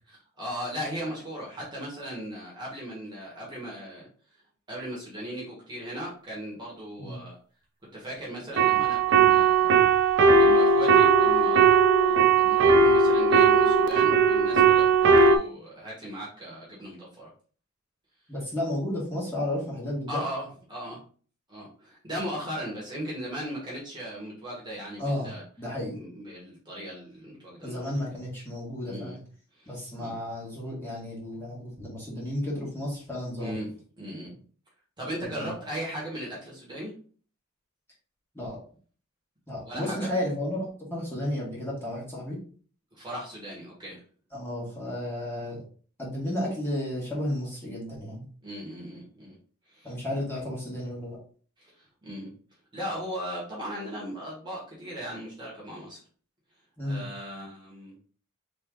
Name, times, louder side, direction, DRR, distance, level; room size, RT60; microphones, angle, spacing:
voice 1, 0.1-4.1 4.7-7.4 7.9-9.7 9.9-17.3 20.1-21.0 21.5-25.4 25.9-27.9 28.8-29.2 29.5-29.7 30.0-30.1 33.4-34.4 35.0-36.9 39.6-40.1 42.9-44.0 48.4-49.3 49.7-49.9 51.6-52.3 52.7-56.0 56.9-58.0, equal, 20° right, -5 dB, 1.5 m, -38 dB
sound 1, 8.6-15.4, right 5 dB, 60° right, 0.5 m, -19 dB
voice 2, 18.3-20.2 25.0-26.0 27.6-29.2 29.7-33.6 35.2-35.5 38.3-38.6 39.5-42.4 44.3-45.6 46.0-48.2 49.8-51.2 56.8-57.0, left 1 dB, 10° left, -6 dB, 1.9 m, -33 dB
3.9 x 3.4 x 3.8 m, 0.42 s
head